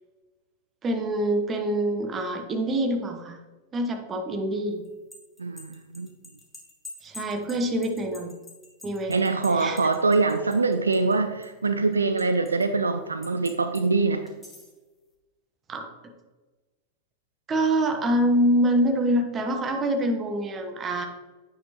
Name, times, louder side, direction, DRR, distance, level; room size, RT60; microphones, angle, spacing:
voice 1, 0.8-3.4 3.7-4.8 7.0-8.3 8.8-9.2 9.5-9.8 15.7-16.1 17.5-21.1, right 1 dB, 25° right, 5 dB, 1.0 m, -25 dB
sound 1, 4.8-11.2 11.4-12.6 13.2-13.8 14.3-14.8, left 2 dB, 5° left, 1.5 m, -46 dB
voice 2, 5.4-6.1 9.1-14.3, right 3 dB, 75° right, 9 dB, 0.4 m, -24 dB
9.2 x 5.4 x 3.0 m, 1.2 s
figure-of-eight pair, 90°, 0 cm